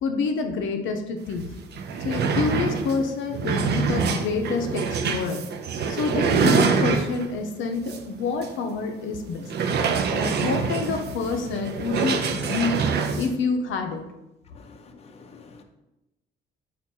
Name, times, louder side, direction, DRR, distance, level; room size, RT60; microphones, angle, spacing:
voice 1, 0.0-1.4 2.0-5.5 5.9-9.5 10.1-12.8 13.2-14.0, left 4 dB, 75° left, 0.6 m, -27 dB
sound 1, 1.3-1.4 1.7-7.4 7.9-8.0 8.4-8.5 9.5-13.3, right 5 dB, 55° right, 0.5 m, -25 dB
voice 2, 14.5-15.6, left 4 dB, 30° left, 0.5 m, -48 dB
4.6 x 2.4 x 4.3 m
cardioid pair, 90°, 20 cm